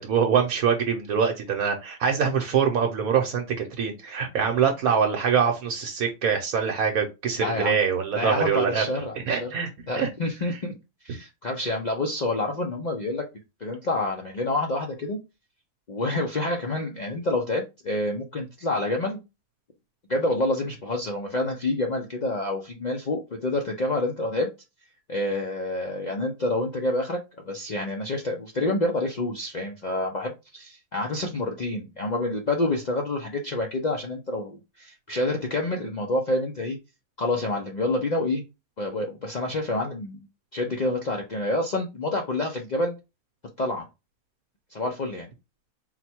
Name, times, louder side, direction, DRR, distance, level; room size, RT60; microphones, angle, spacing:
voice 1, 0.0-3.4 3.8-8.8 9.3-10.1, right 7 dB, 70° right, 3 dB, 1.1 m, -24 dB
voice 2, 7.4-7.7 8.1-9.5 9.9-10.7 11.0-13.3 13.6-15.2 15.9-19.2 20.1-24.5 25.1-27.2 27.5-36.8 37.2-38.4 38.8-40.3 40.5-43.0 43.6-43.9 44.7-45.3, left 2 dB, 80° left, 1 dB, 0.4 m, -28 dB
4.0 x 2.2 x 4.3 m, 0.25 s
omnidirectional pair, 1.6 m